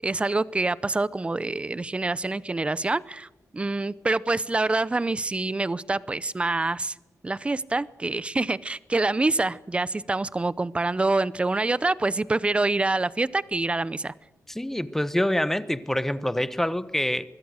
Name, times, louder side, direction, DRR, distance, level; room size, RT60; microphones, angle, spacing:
voice 1, 0.0-3.3 3.5-6.9 7.2-14.1, right 2 dB, 20° right, 19 dB, 0.7 m, -26 dB
voice 2, 14.5-17.2, left 1 dB, 5° left, 14 dB, 1.0 m, -26 dB
25.0 x 22.0 x 6.5 m, 1.0 s
wide cardioid pair, 145°, 6 cm